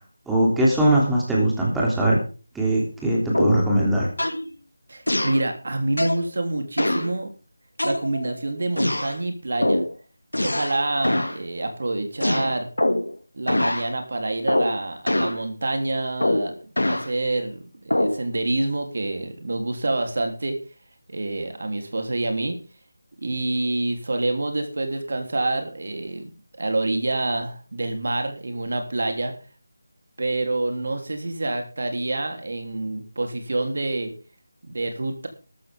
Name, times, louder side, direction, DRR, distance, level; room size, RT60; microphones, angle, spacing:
voice 1, 0.3-2.2 2.5-4.1, right 1 dB, 5° right, -4 dB, 3.0 m, -20 dB
sound 1, 3.3-3.7 4.2-4.4 5.1-5.4 6.0-6.2 6.8-7.1 7.8-8.3 8.8-9.1 9.6-9.9 10.3-10.8 11.0-11.4 12.2-13.1 13.5-13.9 14.5-14.8 15.1-15.4 16.2-17.1 17.9-18.2, left 1 dB, 90° left, 2.5 m, -23 dB
voice 2, 4.9-7.3 7.8-9.8 10.4-12.7 13.3-16.5 16.8-20.6 21.1-22.6 23.2-26.3 26.6-29.3 30.2-34.1 34.6-35.3, right 2 dB, 55° right, 5 dB, 3.3 m, -27 dB
13.5 x 13.0 x 3.7 m, 0.35 s
figure-of-eight pair, 165°, 0 cm